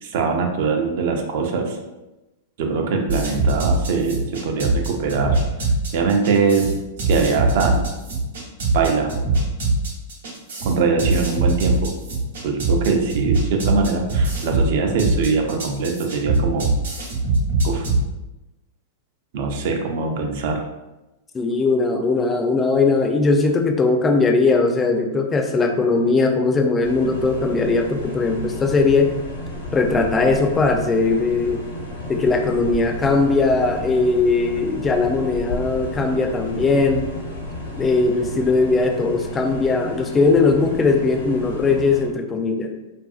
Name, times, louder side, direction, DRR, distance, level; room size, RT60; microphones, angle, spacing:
voice 1, 0.0-1.8 2.6-5.4 5.9-6.7 7.1-7.8 8.7-9.1 10.6-11.9 12.4-16.7 17.6-17.8 19.3-20.6, right 4 dB, 60° right, 3 dB, 0.5 m, -22 dB
sound 1, 3.1-18.0, right 2 dB, 80° right, 0.9 m, -22 dB
voice 2, 21.3-29.1 29.7-31.6 32.1-37.1 37.8-42.7, left 3 dB, 20° left, 3 dB, 0.4 m, -19 dB
sound 2, 26.8-42.1, left 1 dB, 80° left, 0.7 m, -32 dB
2.7 x 2.5 x 2.3 m, 1.0 s
hypercardioid pair, 115°, 0 cm